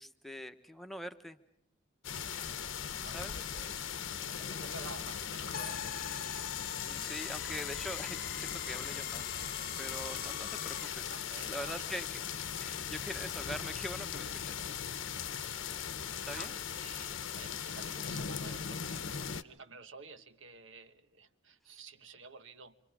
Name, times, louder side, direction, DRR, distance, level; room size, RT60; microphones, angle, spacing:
voice 1, 0.0-1.4 3.1-3.5 6.9-11.1 11.5-14.6 16.3-16.5, equal, ahead, 6 dB, 1.1 m, -44 dB
sound 1, 2.0-19.4, left 8 dB, 75° left, 0.9 m, -39 dB
voice 2, 3.0-3.9 4.3-5.9 11.1-11.9 16.3-22.8, right 4 dB, 75° right, 11 dB, 1.3 m, -51 dB
sound 2, 5.5-11.1, left 8 dB, 45° left, 0.9 m, -43 dB
27.5 x 26.0 x 4.9 m, 0.78 s
head